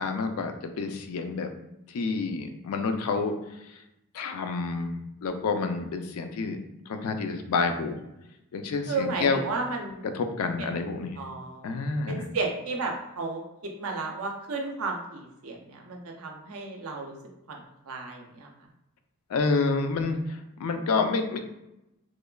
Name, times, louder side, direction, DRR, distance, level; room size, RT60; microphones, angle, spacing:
voice 1, 0.0-1.5 1.9-3.3 4.1-6.6 6.9-8.0 8.5-9.4 10.0-11.2 11.6-12.3 19.3-21.4, left 4 dB, 80° left, 6 dB, 0.4 m, -28 dB
voice 2, 8.9-10.0 10.6-10.7 11.2-11.7 12.1-13.4 13.8-17.1 17.5-17.6 17.9-18.5, right 3 dB, 75° right, 2 dB, 0.5 m, -33 dB
3.0 x 2.2 x 2.3 m, 0.88 s
head